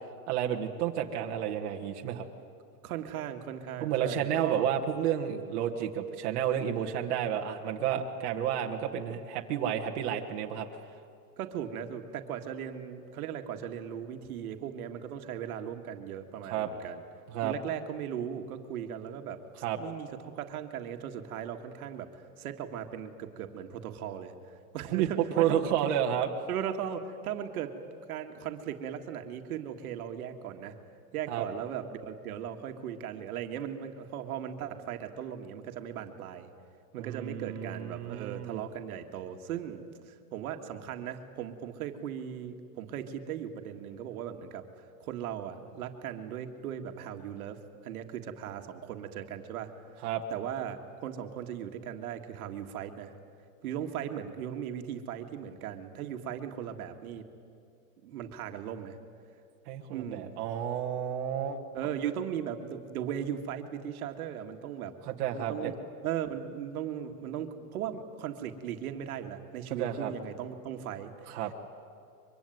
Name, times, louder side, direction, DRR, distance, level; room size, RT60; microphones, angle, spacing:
voice 1, 0.3-2.2 3.8-10.7 16.5-16.7 17.3-17.5 19.6-19.8 24.9-25.1 25.4-26.3 31.3-31.4 36.9-38.6 50.0-50.2 59.7-61.6 65.1-65.7 69.7-70.1 71.3-71.5, right 9 dB, 45° right, 1 dB, 1.7 m, -31 dB
voice 2, 2.8-4.7 11.4-17.0 17.4-19.4 19.8-22.1 22.4-24.3 24.7-25.6 26.5-27.7 28.1-30.8 31.1-36.5 36.9-39.8 40.1-44.6 45.0-49.7 50.3-53.1 53.6-57.2 58.0-59.0 59.9-60.4 61.7-64.9 65.3-71.1, right 9 dB, 70° right, 5 dB, 2.0 m, -38 dB
23.5 x 23.5 x 9.3 m, 2.5 s
supercardioid pair, 170°, 46 cm